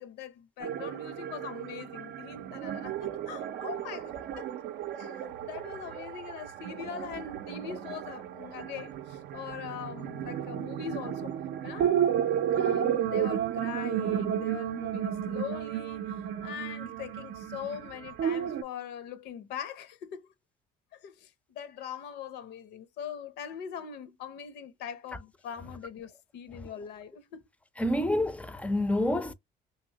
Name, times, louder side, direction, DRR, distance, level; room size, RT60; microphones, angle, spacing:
voice 1, 0.0-4.5 4.9-11.3 11.6-12.0 12.5-20.3 20.9-27.4, left 8 dB, 80° left, 0.6 m, -42 dB
sound 1, 0.6-18.6, right 10 dB, 75° right, 0.5 m, -33 dB
voice 2, 27.8-29.3, left 1 dB, 10° left, 0.4 m, -28 dB
3.0 x 2.7 x 2.8 m
cardioid pair, 110°, 17 cm